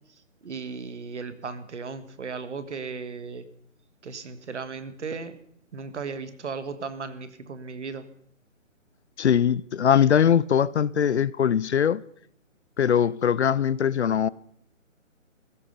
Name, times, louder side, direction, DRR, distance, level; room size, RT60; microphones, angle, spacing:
voice 1, 0.4-3.4 4.0-5.4 5.7-8.0, right 5 dB, 60° right, 1.5 m, -36 dB
voice 2, 9.2-12.0 12.8-14.3, left 8 dB, 55° left, 0.5 m, -21 dB
15.0 x 13.0 x 5.2 m
hypercardioid pair, 160°, 39 cm